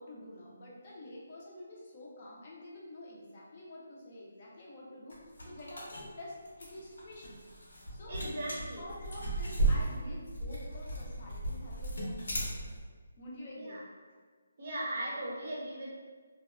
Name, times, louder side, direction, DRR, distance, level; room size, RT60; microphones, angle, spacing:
voice 1, 0.0-7.4 7.9-12.8 13.2-13.8, left 1 dB, 35° left, -4 dB, 0.5 m, -48 dB
sound 1, 5.1-12.8, right 2 dB, 80° left, 0.9 m, -35 dB
voice 2, 8.1-8.8 13.5-13.8 14.6-15.9, right 1 dB, 45° right, -5 dB, 0.6 m, -38 dB
2.6 x 2.2 x 2.4 m, 1.5 s
hypercardioid pair, 170°, 0 cm